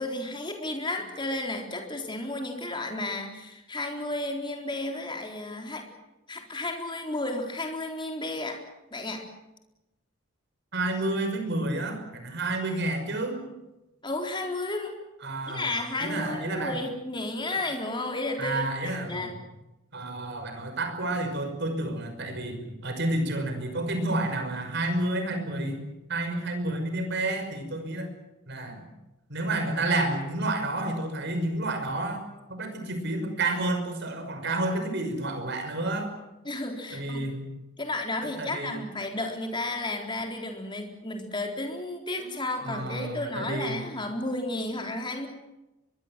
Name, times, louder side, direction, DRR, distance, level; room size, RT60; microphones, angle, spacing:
voice 1, 0.0-5.8 6.3-8.6 8.9-9.2 14.0-15.0 15.5-18.6 19.1-19.3 36.4-37.2 37.8-45.3, left 2 dB, 20° left, 3 dB, 4.0 m, -32 dB
voice 2, 10.7-13.5 15.2-16.8 18.4-19.3 19.9-25.8 26.1-28.1 28.5-28.9 29.3-36.1 36.9-37.5 38.4-38.8 42.2-43.8, right 2 dB, 50° right, 6 dB, 5.7 m, -30 dB
24.5 x 22.5 x 7.6 m, 0.96 s
head